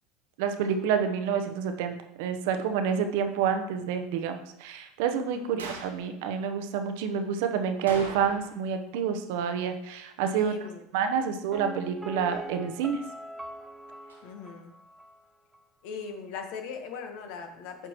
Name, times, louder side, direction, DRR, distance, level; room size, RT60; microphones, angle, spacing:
voice 1, 0.4-10.5 10.9-13.0, right 7 dB, 65° right, 7 dB, 0.8 m, -28 dB
voice 2, 5.3-5.7 10.4-11.2 14.2-14.7 15.8-17.9, left 5 dB, 60° left, 5 dB, 1.2 m, -40 dB
sound 1, 5.6-6.0 7.9-8.7 9.0-9.1 14.1-14.2, right 3 dB, 80° right, 1.1 m, -40 dB
Piano, 11.5-15.3 15.5-15.6, right 1 dB, 10° right, 0.6 m, -42 dB
8.9 x 5.9 x 3.0 m, 0.77 s
figure-of-eight pair, 75°, 0 cm